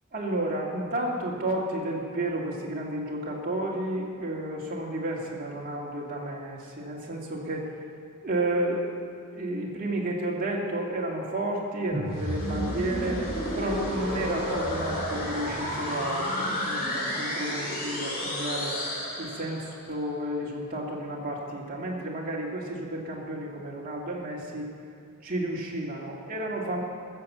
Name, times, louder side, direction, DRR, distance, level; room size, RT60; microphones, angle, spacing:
voice 1, 0.1-7.7 8.2-8.9 9.3-13.2 13.5-18.7 19.2-24.7 25.2-26.8, right 1 dB, 40° right, -3 dB, 2.3 m, -31 dB
sound 1, 11.9-19.8, equal, 45° left, 3.6 m, -31 dB
14.5 x 7.0 x 7.4 m, 2.4 s
head